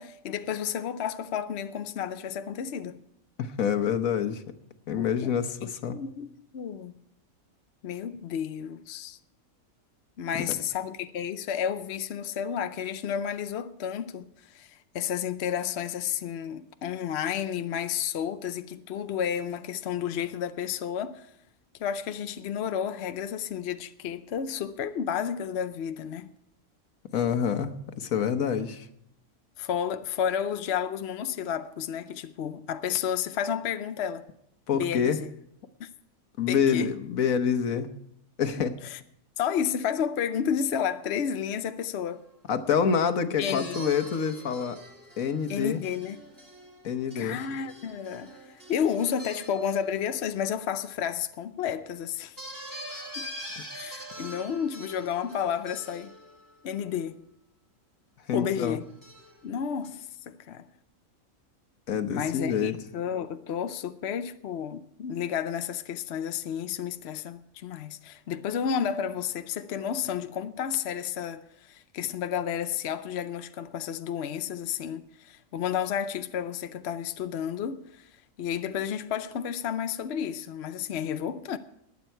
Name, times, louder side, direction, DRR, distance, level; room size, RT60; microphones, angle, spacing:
voice 1, 0.0-3.0 5.0-5.3 5.6-7.0 7.8-9.2 10.2-21.3 21.8-26.3 29.6-34.3 34.7-35.3 35.8-35.9 36.5-37.0 38.8-39.0 39.4-42.2 43.4-43.8 45.5-46.2 47.1-48.4 48.7-52.4 53.2-53.3 53.7-56.1 56.6-57.2 58.3-58.8 59.4-60.7 62.1-78.1 78.4-81.6, left 8 dB, 60° left, 0.8 m, -31 dB
voice 2, 3.4-4.4 4.9-6.0 10.3-10.6 27.1-28.9 34.7-35.2 36.4-37.9 38.4-38.7 42.5-44.8 45.2-45.8 46.8-47.4 53.5-53.6 58.3-58.8 61.9-62.8, left 7 dB, 75° left, 1.4 m, -27 dB
sound 1, 42.1-42.4 43.4-50.4 52.4-56.6 58.8-59.5 59.8-59.9, equal, 15° right, 3.1 m, -44 dB
21.0 x 8.3 x 4.5 m
omnidirectional pair, 1.5 m